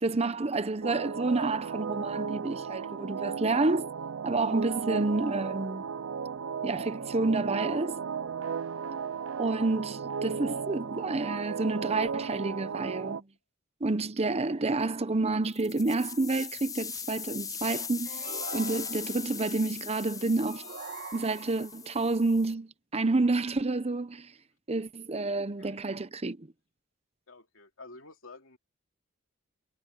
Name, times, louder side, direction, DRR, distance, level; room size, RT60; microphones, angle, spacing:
voice 1, 0.0-3.9 4.2-5.8 6.6-8.0 9.4-13.2 13.8-20.7 21.1-24.3 24.7-26.5, right 3 dB, 30° right, 0.8 m, -29 dB
sound 1, 0.8-13.2, right 6 dB, 70° right, 0.5 m, -35 dB
sound 2, 15.4-22.5, left 7 dB, 15° left, 0.5 m, -40 dB
sound 3, 18.0-19.4 20.5-21.8, right 4 dB, 55° right, 1.8 m, -43 dB
voice 2, 27.3-28.6, left 3 dB, 80° left, 2.9 m, -50 dB
head